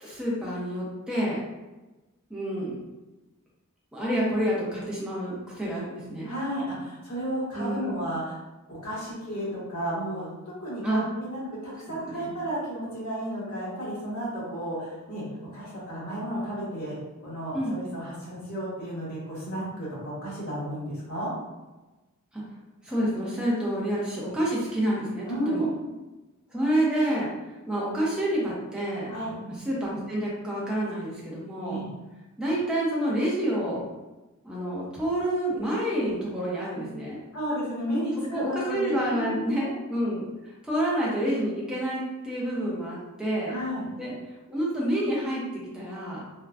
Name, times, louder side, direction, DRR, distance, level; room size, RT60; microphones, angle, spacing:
voice 1, 0.0-1.4 2.3-2.8 3.9-6.3 7.5-8.0 10.8-11.1 11.9-12.3 17.5-17.8 22.3-22.4 22.8-25.7 26.5-27.3 27.7-29.1 29.7-31.8 32.4-33.9 34.4-37.2 38.3-43.6 44.0-44.2 44.5-46.2, right 1 dB, 5° right, -6 dB, 0.7 m, -28 dB
voice 2, 6.2-8.4 8.7-15.2 15.5-17.0 17.2-21.3 25.2-25.8 29.1-29.3 31.6-31.9 37.3-39.6 43.5-43.9, equal, 80° left, -8 dB, 1.4 m, -32 dB
3.3 x 2.2 x 2.4 m, 1.1 s
head